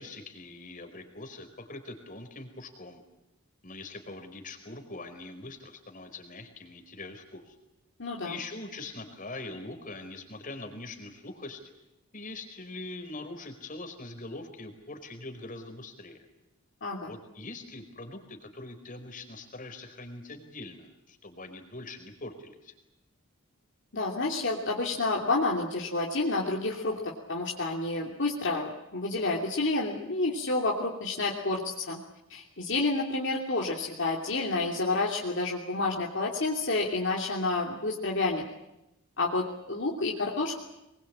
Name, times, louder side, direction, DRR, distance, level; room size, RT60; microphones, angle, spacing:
voice 1, 0.0-3.0 3.6-7.6 8.2-11.6 12.1-16.3 17.0-22.7, left 2 dB, 40° left, 6 dB, 4.7 m, -43 dB
voice 2, 8.0-8.4 16.8-17.1 23.9-32.0 32.3-38.4 39.2-40.6, left 3 dB, 55° left, -2 dB, 3.0 m, -29 dB
24.5 x 22.0 x 8.8 m, 0.92 s
head